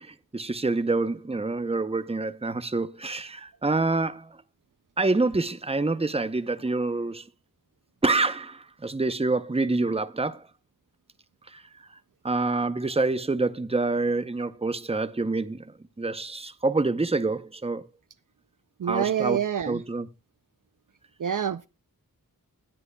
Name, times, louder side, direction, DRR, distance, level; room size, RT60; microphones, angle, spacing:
voice 1, 0.0-4.3 5.0-7.2 8.0-10.4 11.5-11.6 12.2-17.9 18.8-19.4 19.7-20.1, right 3 dB, 15° right, 0.6 m, -27 dB
voice 2, 18.8-19.8 21.2-21.7, right 9 dB, 60° right, 0.4 m, -26 dB
18.0 x 7.6 x 2.2 m
wide cardioid pair, 45°, 36 cm